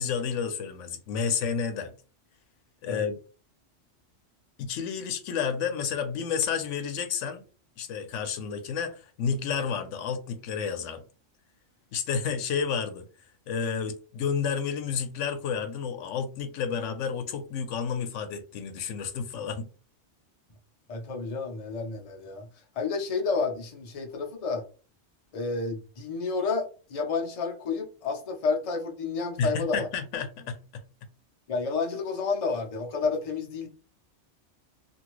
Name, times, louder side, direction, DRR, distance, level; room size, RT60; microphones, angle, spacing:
voice 1, 0.0-2.0 2.8-3.2 4.6-7.4 7.8-11.0 11.9-13.0 13.5-19.7 29.4-30.8, left 6 dB, 85° left, 0.9 m, -30 dB
voice 2, 20.9-22.5 22.7-24.6 25.3-29.9 31.5-33.7, left 4 dB, 40° left, 0.6 m, -30 dB
2.8 x 2.6 x 3.0 m
omnidirectional pair, 1.2 m